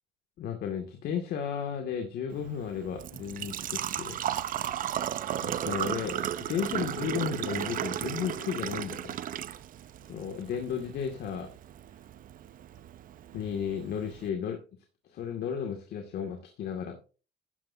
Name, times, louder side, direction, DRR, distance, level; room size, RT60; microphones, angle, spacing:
voice 1, 0.4-4.2 5.4-9.1 10.1-11.5 13.3-14.6 15.1-17.1, left 7 dB, 70° left, 4 dB, 2.2 m, -34 dB
Engine / Trickle dribble / Fill (with liquid), 2.3-14.3, right 10 dB, 55° right, 0.8 m, -35 dB
13.5 x 10.0 x 2.7 m, 0.34 s
cardioid pair, 110°, 17 cm